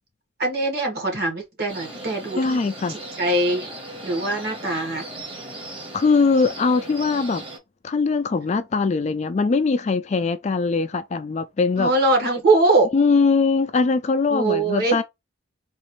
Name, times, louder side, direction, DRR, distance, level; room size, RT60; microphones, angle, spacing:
voice 1, 0.4-2.6 2.9-3.7 4.0-5.1 11.8-12.9 14.3-15.0, right 2 dB, 55° right, 1.6 m, -22 dB
sound 1, 1.7-7.6, right 1 dB, 25° right, 1.1 m, -37 dB
voice 2, 2.4-3.0 5.9-7.4 7.8-11.9 12.9-15.0, left 4 dB, 35° left, 0.3 m, -21 dB
3.9 x 2.5 x 3.1 m
head